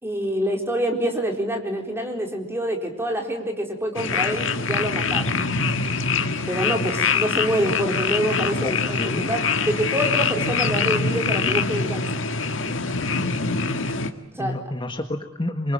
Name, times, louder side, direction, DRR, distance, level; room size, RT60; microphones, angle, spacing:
voice 1, 0.0-5.3 6.5-12.2 14.3-14.6, equal, 10° right, 2 dB, 4.3 m, -26 dB
sound 1, 4.0-14.1, left 4 dB, 70° left, 1.8 m, -24 dB
voice 2, 8.6-9.3 14.4-15.7, left 1 dB, 25° left, 5 dB, 1.6 m, -29 dB
27.0 x 24.0 x 8.9 m, 0.79 s
head